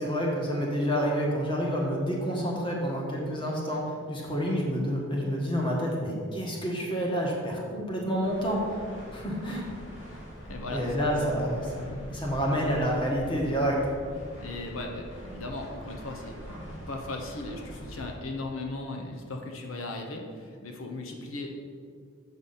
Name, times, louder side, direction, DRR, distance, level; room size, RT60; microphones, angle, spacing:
voice 1, 0.0-8.6 9.1-9.6 10.7-13.8, equal, 25° left, -2 dB, 1.4 m, -28 dB
sound 1, 8.2-18.2, equal, 65° left, 2.2 m, -44 dB
voice 2, 10.4-11.0 14.4-16.4 16.9-21.6, left 2 dB, 85° left, 2 dB, 1.0 m, -37 dB
7.2 x 6.0 x 5.6 m, 2.1 s
head